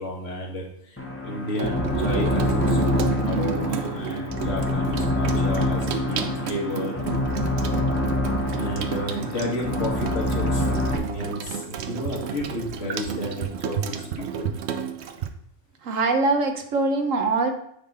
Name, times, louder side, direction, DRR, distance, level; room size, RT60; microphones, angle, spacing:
voice 1, 0.0-7.0 8.5-13.8 14.2-14.5, left 1 dB, 70° left, -1 dB, 1.8 m, -32 dB
sound 1, 1.0-11.0, left 1 dB, 10° left, 0.8 m, -26 dB
Water tap faucet / Sink (filling or washing), 1.5-15.3, right 7 dB, 65° right, 0.8 m, -31 dB
voice 2, 15.8-17.5, right 3 dB, 90° right, 5 dB, 1.3 m, -23 dB
9.2 x 3.9 x 4.2 m, 0.71 s
omnidirectional pair, 1.3 m